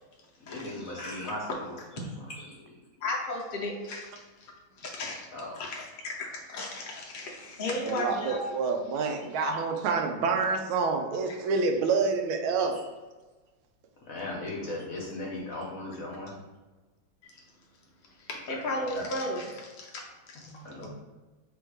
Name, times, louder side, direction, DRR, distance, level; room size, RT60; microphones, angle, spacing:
voice 1, 0.4-1.8 2.2-2.5 5.3-5.6 14.1-16.3 18.9-19.0 20.6-20.9, left 2 dB, 60° left, -3 dB, 0.9 m, -37 dB
voice 2, 3.0-4.2 4.8-5.3 5.6-8.4 17.2-17.3 18.3-20.5 20.8-20.9, left 1 dB, 85° left, -3 dB, 0.4 m, -35 dB
voice 3, 7.8-12.8, right 4 dB, 85° right, 5 dB, 1.4 m, -27 dB
3.5 x 3.2 x 4.7 m, 1.2 s
omnidirectional pair, 2.2 m